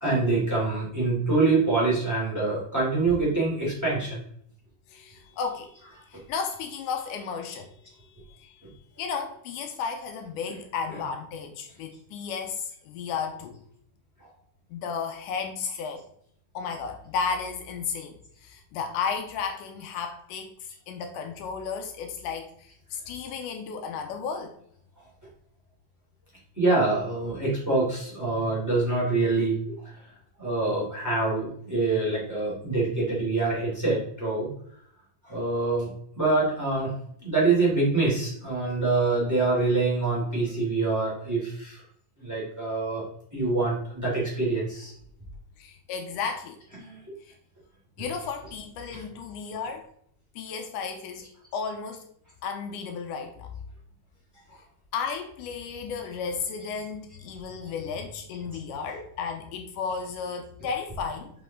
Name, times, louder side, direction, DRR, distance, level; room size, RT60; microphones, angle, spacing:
voice 1, 0.0-4.2 26.6-29.6 30.4-34.5 35.2-35.9 36.2-36.9 37.2-41.8 42.2-43.0 43.3-44.9 46.8-47.0 48.9-49.0 57.6-57.7, right 3 dB, 5° right, -6 dB, 2.6 m, -25 dB
voice 2, 4.9-5.8 6.1-8.6 9.0-13.6 14.7-16.0 16.5-24.6 45.6-46.6 47.3-47.4 48.0-49.9 50.4-51.3 51.5-52.1 52.4-53.5 54.9-61.3, left 6 dB, 80° left, 5 dB, 2.1 m, -34 dB
5.9 x 5.7 x 3.7 m, 0.66 s
omnidirectional pair, 3.7 m